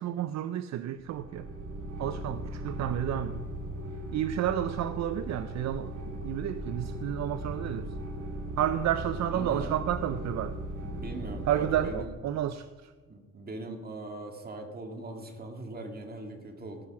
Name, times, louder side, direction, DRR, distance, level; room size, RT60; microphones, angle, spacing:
voice 1, 0.0-1.5 2.0-3.4 4.1-7.9 8.6-10.6 11.5-12.9, right 11 dB, 60° right, 12 dB, 0.5 m, -31 dB
sound 1, 1.0-12.0, right 1 dB, 85° right, 2.1 m, -38 dB
voice 2, 9.3-9.8 10.8-12.1 13.0-16.9, right 2 dB, 30° right, 3 dB, 2.1 m, -40 dB
18.0 x 6.3 x 6.0 m, 1.5 s
cardioid pair, 90°, 30 cm